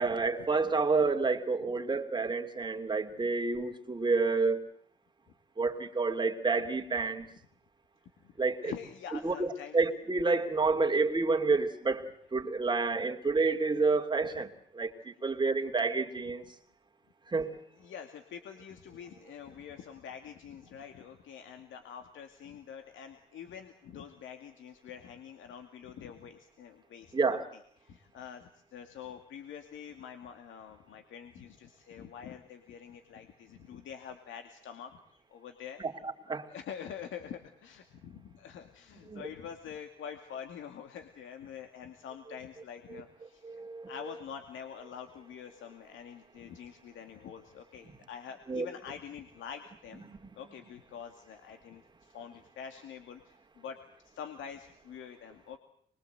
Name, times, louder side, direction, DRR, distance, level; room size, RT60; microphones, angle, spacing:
voice 1, 0.0-4.6 5.6-7.3 8.4-8.7 9.2-16.4 17.3-17.6 27.1-27.4 36.3-36.5 39.1-39.2 43.4-43.9 48.5-48.7, right 4 dB, 25° right, 2.8 m, -29 dB
voice 2, 8.6-9.8 14.2-14.3 17.8-35.8 36.5-43.6 43.9-50.1 50.4-53.8 54.0-55.6, left 8 dB, 80° left, 2.3 m, -46 dB
25.0 x 22.5 x 8.0 m
cardioid pair, 90°, 20 cm